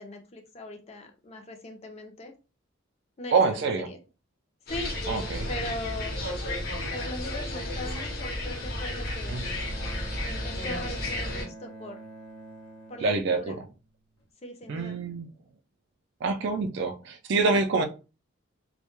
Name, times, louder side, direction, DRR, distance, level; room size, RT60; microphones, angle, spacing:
voice 1, 0.0-2.3 3.2-4.0 4.7-4.9 5.5-6.2 6.9-9.4 10.2-12.0 12.9-13.6 14.4-15.0, left 1 dB, 30° left, 0.5 m, -39 dB
voice 2, 3.3-3.9 5.1-5.5 9.3-9.4 13.0-13.5 14.7-15.3 16.2-17.8, right 4 dB, 60° right, 0.3 m, -26 dB
sound 1, 4.7-11.5, left 1 dB, 50° left, 0.8 m, -33 dB
Bowed string instrument, 9.2-14.2, right 2 dB, 80° left, 0.7 m, -47 dB
2.2 x 2.1 x 2.9 m
head